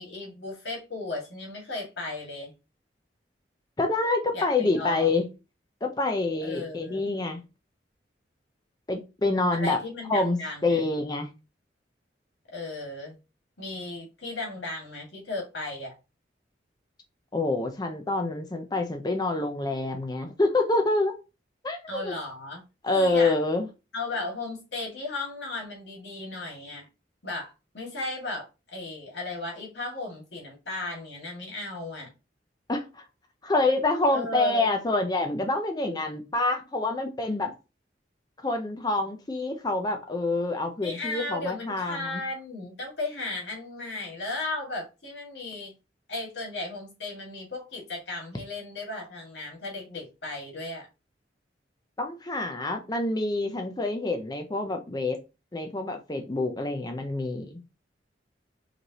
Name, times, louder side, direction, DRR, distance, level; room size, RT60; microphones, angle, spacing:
voice 1, 0.0-2.5 4.3-5.1 6.4-7.0 9.5-10.8 12.5-13.2 13.6-15.9 21.9-22.6 22.9-23.4 23.9-26.9 27.2-32.1 34.1-34.7 40.8-45.7 46.1-50.9, left 2 dB, 80° left, 2.2 m, -35 dB
voice 2, 3.8-5.3 5.8-7.4 8.9-9.8 10.1-11.3 17.3-21.1 21.6-22.1 22.8-23.7 32.7-33.0 33.4-37.5 38.4-42.2 52.0-55.2 55.5-57.5, left 2 dB, 20° left, 0.5 m, -27 dB
4.9 x 3.2 x 2.9 m
head